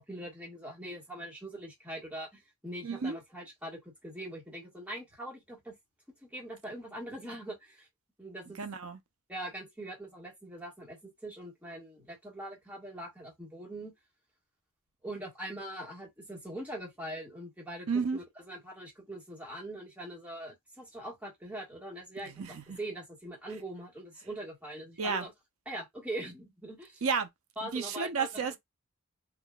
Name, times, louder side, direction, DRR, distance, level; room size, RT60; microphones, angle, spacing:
voice 1, 0.0-5.8 6.2-7.9 8.2-8.6 9.3-13.9 15.0-25.3 25.6-27.0 27.6-28.6, right 1 dB, 5° right, 1.4 m, -42 dB
voice 2, 2.8-3.2 8.6-9.0 17.9-18.2 22.2-22.8 25.0-25.3 27.0-27.3 27.6-28.6, right 5 dB, 70° right, 0.6 m, -32 dB
3.7 x 2.5 x 2.3 m
head